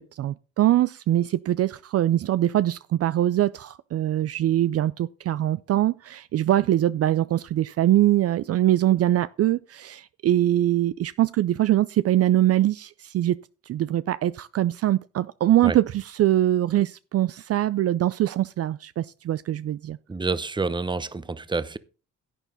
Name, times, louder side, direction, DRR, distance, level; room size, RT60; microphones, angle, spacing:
voice 1, 0.0-13.4 13.7-20.0, right 13 dB, 55° right, 0.4 m, -23 dB
voice 2, 20.1-21.8, right 3 dB, 15° right, 0.7 m, -28 dB
11.0 x 9.1 x 4.0 m
cardioid pair, 90°, 30 cm